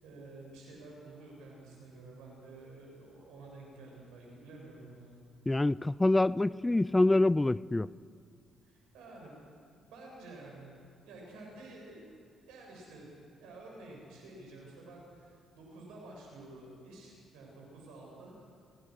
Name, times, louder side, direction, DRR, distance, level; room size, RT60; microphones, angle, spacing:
voice 1, 0.0-5.2 8.6-9.4 9.8-10.7 11.0-12.1 12.5-18.3, right 2 dB, 80° right, -1 dB, 7.3 m, -50 dB
voice 2, 5.5-7.9, left 2 dB, 15° left, 20 dB, 0.4 m, -26 dB
27.5 x 17.0 x 6.5 m, 2.3 s
hypercardioid pair, 50°, 0 cm